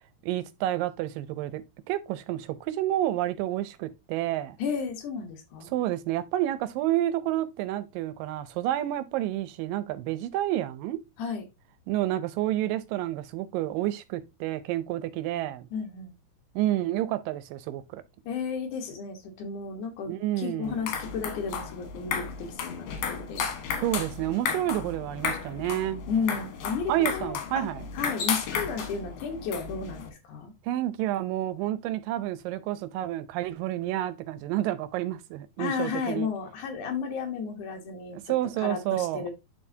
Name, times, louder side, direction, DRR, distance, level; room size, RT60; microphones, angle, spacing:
voice 1, 0.2-1.6 1.9-4.6 5.7-11.0 11.9-15.7 16.6-18.0 20.1-20.8 23.8-26.0 26.9-27.8 30.7-36.3 38.1-39.3, right 14 dB, 80° right, 2.2 m, -29 dB
voice 2, 4.6-5.7 11.2-11.4 15.7-16.1 18.2-23.5 26.1-27.7 27.9-30.5 35.6-38.2 38.6-39.3, left 5 dB, 65° left, 2.7 m, -33 dB
sound 1, 20.6-30.1, left 6 dB, 80° left, 3.1 m, -34 dB
11.0 x 3.9 x 2.7 m
omnidirectional pair, 4.1 m